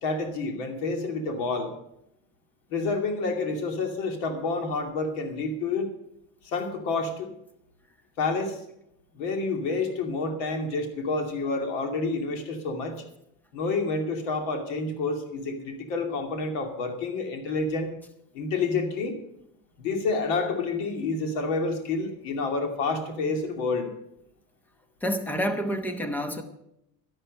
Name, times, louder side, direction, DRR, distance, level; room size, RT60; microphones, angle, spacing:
voice 1, 0.0-1.7 2.7-5.9 6.4-7.3 8.2-8.6 9.1-13.0 13.5-17.9 18.3-19.1 19.8-23.9, left 3 dB, 80° left, 4 dB, 2.6 m, -29 dB
voice 2, 25.0-26.4, equal, 5° left, 8 dB, 0.9 m, -28 dB
12.5 x 11.5 x 5.4 m, 0.78 s
cardioid pair, 165°, 37 cm